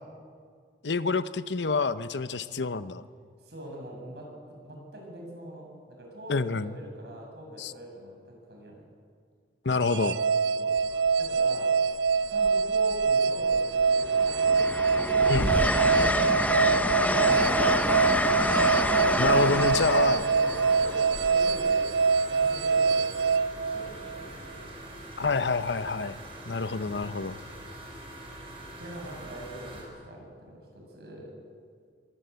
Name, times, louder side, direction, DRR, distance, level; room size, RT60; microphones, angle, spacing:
voice 1, 0.8-3.0 6.3-6.7 7.6-7.7 9.6-10.2 15.3-15.5 19.2-20.2 25.2-26.2 26.5-27.4, left 4 dB, 85° left, 14 dB, 0.8 m, -27 dB
voice 2, 3.4-8.8 10.5-10.8 11.2-11.8 12.3-14.7 15.2-18.3 19.9-21.9 22.2-24.8 26.7-27.0 28.8-31.3, right 1 dB, 65° right, 0 dB, 7.6 m, -43 dB
sound 1, 9.8-24.2, right 5 dB, 85° right, 0.6 m, -25 dB
Train, 10.8-11.1 12.4-13.1 13.5-22.3 23.9-24.1, left 1 dB, 10° left, 0.7 m, -28 dB
sound 2, 17.1-29.8, right 1 dB, 30° right, 6.1 m, -44 dB
24.5 x 18.5 x 8.2 m, 2.1 s
head